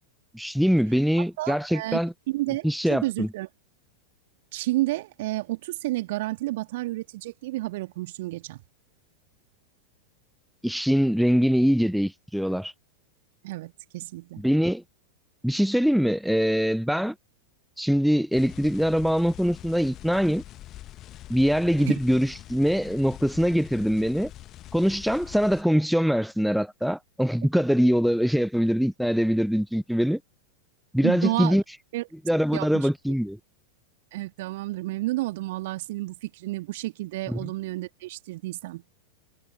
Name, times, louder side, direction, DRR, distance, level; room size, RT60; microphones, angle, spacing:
voice 1, 0.3-2.1 2.6-3.3 10.6-12.7 14.4-14.8 15.4-17.1 17.8-20.4 21.3-24.3 24.7-30.2 30.9-31.6 32.3-33.4 37.3-37.5, equal, ahead, 0.6 m, -23 dB
voice 2, 1.4-2.0 2.3-3.5 4.5-8.6 13.4-14.4 21.8-21.9 31.0-31.6 31.9-32.1 32.5-32.9 34.1-38.8, right 18 dB, 50° right, 2.2 m, -31 dB
sound 1, 18.3-25.6, left 13 dB, 35° left, 1.1 m, -44 dB
figure-of-eight pair, 90°, 0 cm